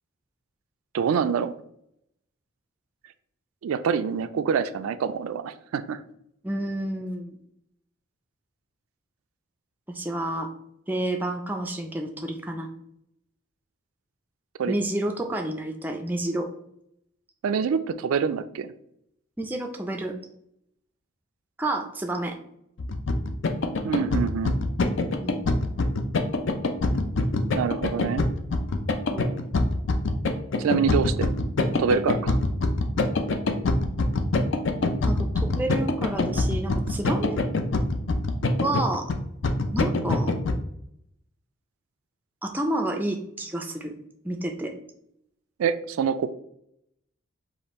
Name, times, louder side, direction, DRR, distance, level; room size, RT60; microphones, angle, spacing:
voice 1, 0.9-1.5 3.6-6.0 14.6-14.8 17.4-18.7 23.8-24.5 27.5-28.2 30.6-31.3 31.8-32.4 45.6-46.3, right 6 dB, 80° right, 11 dB, 0.3 m, -26 dB
voice 2, 6.4-7.4 9.9-10.5 10.9-12.7 14.7-16.5 19.4-20.2 21.6-22.4 25.2-25.5 29.1-29.4 35.1-37.4 38.6-39.1 39.7-40.3 42.4-43.9 44.2-44.7, right 1 dB, 10° right, 4 dB, 0.4 m, -29 dB
sound 1, 22.8-40.6, left 2 dB, 60° left, 0.5 m, -24 dB
4.9 x 2.5 x 4.1 m, 0.75 s
head